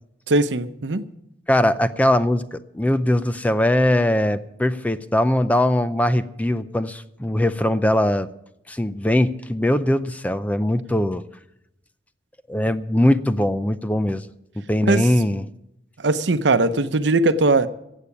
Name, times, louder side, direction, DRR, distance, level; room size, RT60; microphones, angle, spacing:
voice 1, 0.3-1.1 14.8-15.1 16.0-17.7, right 2 dB, 85° right, 0.8 m, -19 dB
voice 2, 1.5-8.3 8.7-11.2 12.5-14.2 14.7-15.4, left 1 dB, 10° left, 0.4 m, -21 dB
15.5 x 8.2 x 7.1 m
head